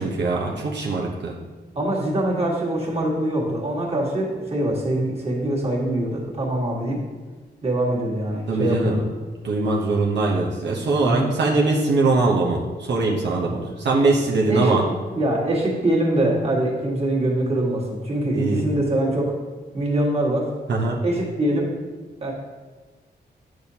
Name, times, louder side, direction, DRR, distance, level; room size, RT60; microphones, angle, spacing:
voice 1, 0.0-1.3 8.5-9.0 9.4-14.8 18.3-18.7 20.7-21.0, right 3 dB, 85° right, -2 dB, 0.9 m, -22 dB
voice 2, 1.8-7.0 7.6-9.1 10.9-11.3 14.5-14.8 15.1-19.3 19.7-20.5 21.0-21.7 22.2-22.3, right 1 dB, 35° right, -4 dB, 1.7 m, -23 dB
8.8 x 6.3 x 2.8 m, 1.4 s
wide cardioid pair, 115°, 18 cm